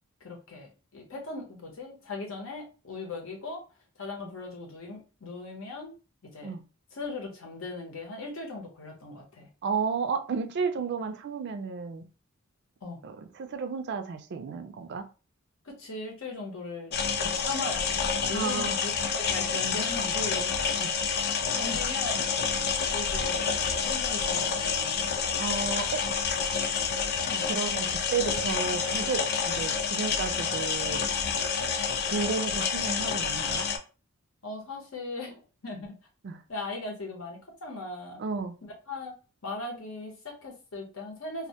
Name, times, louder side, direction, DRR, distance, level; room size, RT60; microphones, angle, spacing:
voice 1, 0.2-3.6 4.0-5.9 6.2-6.5 6.9-9.5 12.8-13.0 15.6-20.6 21.6-23.4 23.8-25.0 25.8-26.0 26.4-26.6 27.3-27.5 34.4-36.0 36.5-38.2 38.6-39.1 39.4-41.5, left 3 dB, 70° left, 0.8 m, -39 dB
voice 2, 9.6-12.1 13.0-15.0 18.3-18.8 20.8-20.9 25.4-26.0 27.4-31.0 32.1-33.7 36.2-36.4 38.2-38.5, right 5 dB, 55° right, 0.4 m, -32 dB
sound 1, 16.9-33.8, left 6 dB, 50° left, 0.3 m, -28 dB
2.1 x 2.1 x 2.7 m
head